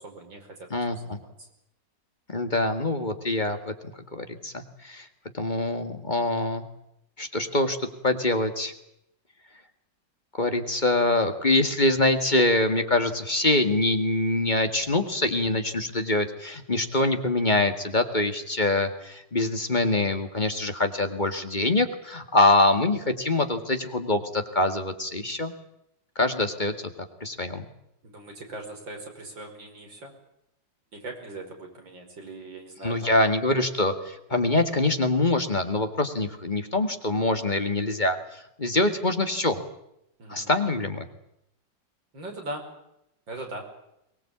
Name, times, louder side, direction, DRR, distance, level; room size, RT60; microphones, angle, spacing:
voice 1, 0.0-1.5 28.0-30.1 30.9-33.2 40.2-40.5 42.1-42.7 43.3-43.7, right 2 dB, 80° right, 2 dB, 6.0 m, -40 dB
voice 2, 0.7-1.2 2.3-3.7 4.1-5.1 5.3-6.6 7.2-7.8 8.0-8.7 10.4-25.5 26.2-26.7 27.2-27.7 32.8-39.6 40.3-41.0, left 2 dB, 25° left, 7 dB, 2.1 m, -24 dB
23.5 x 19.5 x 8.7 m, 0.80 s
omnidirectional pair, 2.0 m